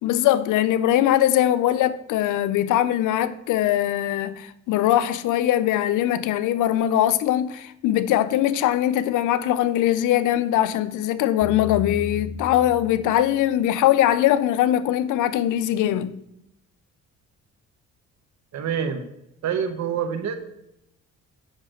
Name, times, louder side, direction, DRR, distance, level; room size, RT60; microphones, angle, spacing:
voice 1, 0.0-16.1, left 12 dB, 90° left, 0.6 m, -21 dB
sound 1, 11.4-13.8, left 4 dB, 35° left, 3.3 m, -35 dB
voice 2, 18.5-19.0 19.4-20.4, right 7 dB, 65° right, 1.1 m, -26 dB
8.1 x 5.9 x 6.5 m
cardioid pair, 90°, 30 cm